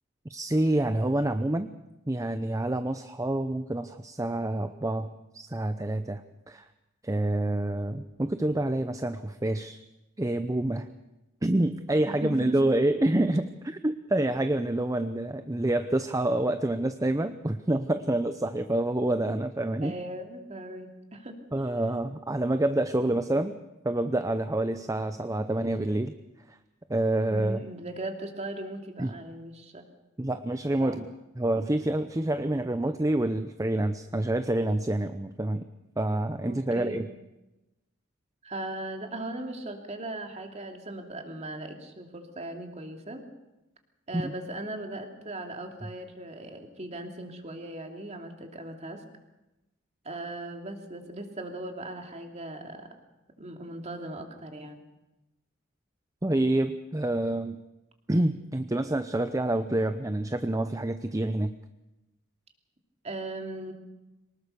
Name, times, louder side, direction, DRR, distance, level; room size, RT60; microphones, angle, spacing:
voice 1, 0.3-1.7 2.1-5.1 5.3-6.7 7.0-9.8 10.2-10.9 11.4-19.9 21.5-23.5 23.8-26.1 26.5-26.6 26.9-27.6 29.0-29.2 30.2-31.1 31.4-35.7 36.0-37.1 44.1-44.3 56.2-57.6 58.1-61.5, right 1 dB, 15° right, 10 dB, 0.7 m, -27 dB
voice 2, 12.1-12.6 19.8-21.4 22.0-22.1 23.1-23.2 27.3-29.8 30.8-31.0 36.5-37.0 38.4-43.3 44.1-49.0 50.0-52.9 53.4-54.8 63.0-63.7, right 1 dB, 35° right, 4 dB, 2.8 m, -38 dB
24.0 x 19.5 x 6.7 m, 0.99 s
head